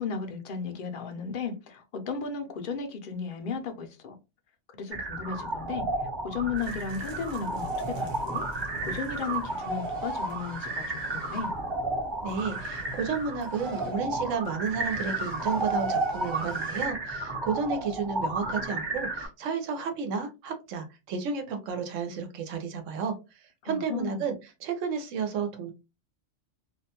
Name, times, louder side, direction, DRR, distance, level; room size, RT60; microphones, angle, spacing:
voice 1, 0.0-4.2 4.8-5.9 6.2-11.5 23.6-24.2, left 5 dB, 60° left, 0.6 m, -35 dB
sound 1, 4.9-19.3, right 2 dB, 30° right, 0.5 m, -32 dB
sound 2, 6.6-11.5 12.3-14.0 14.3-16.9, right 4 dB, 60° right, 0.9 m, -48 dB
voice 2, 12.2-23.1 23.6-24.3 24.6-25.7, right 5 dB, 90° right, 1.0 m, -32 dB
2.4 x 2.2 x 2.8 m
omnidirectional pair, 1.3 m